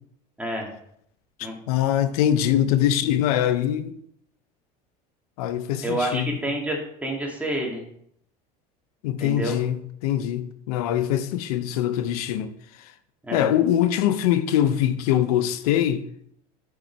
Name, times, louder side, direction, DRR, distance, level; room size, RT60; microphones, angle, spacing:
voice 1, 1.7-3.9 5.4-6.4 9.0-12.5 13.3-16.0, left 11 dB, 90° left, 0.6 m, -23 dB
voice 2, 5.8-7.8 9.2-9.6 13.2-13.5, right 1 dB, 5° right, 2.0 m, -28 dB
6.5 x 5.0 x 4.5 m
supercardioid pair, 110°, 19 cm